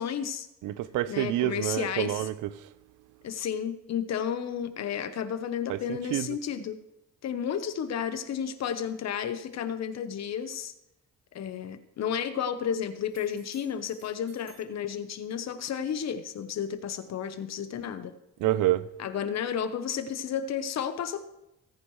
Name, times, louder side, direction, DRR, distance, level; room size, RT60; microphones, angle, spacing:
voice 1, 0.0-0.5 1.1-2.3 3.2-6.8 7.2-10.7 11.3-18.1 19.0-21.2, left 8 dB, 60° left, 1.0 m, -32 dB
voice 2, 0.6-2.7 5.7-6.4 18.4-18.9, right 14 dB, 85° right, 0.6 m, -28 dB
sound 1, 13.1-14.7 18.4-18.5, right 4 dB, 60° right, 4.2 m, -57 dB
17.0 x 9.5 x 3.2 m
cardioid pair, 90°, 30 cm